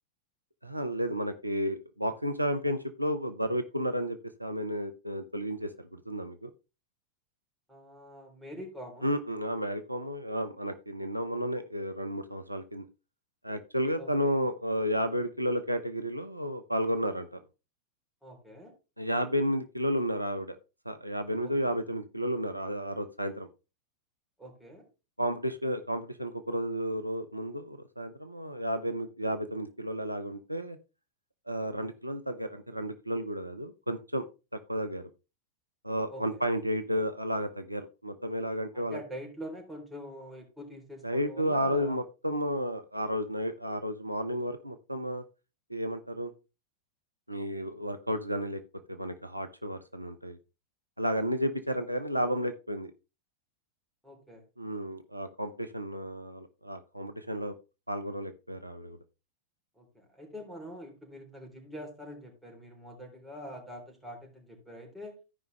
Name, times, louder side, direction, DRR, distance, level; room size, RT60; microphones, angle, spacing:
voice 1, 0.6-6.5 9.0-12.9 13.4-17.4 19.0-20.6 20.8-23.5 25.2-30.8 31.5-34.2 34.7-35.1 35.8-39.0 41.0-45.2 45.7-46.3 47.3-48.6 48.9-50.4 51.0-52.9 54.6-57.5 57.9-59.0, equal, 90° right, 8 dB, 0.7 m, -32 dB
voice 2, 7.7-9.2 14.0-14.3 18.2-18.7 21.4-21.8 24.4-24.9 36.1-36.4 38.7-42.0 54.0-54.4 59.8-65.2, equal, 5° right, 0 dB, 3.6 m, -45 dB
13.5 x 5.2 x 3.3 m, 0.29 s
figure-of-eight pair, 90°, 0 cm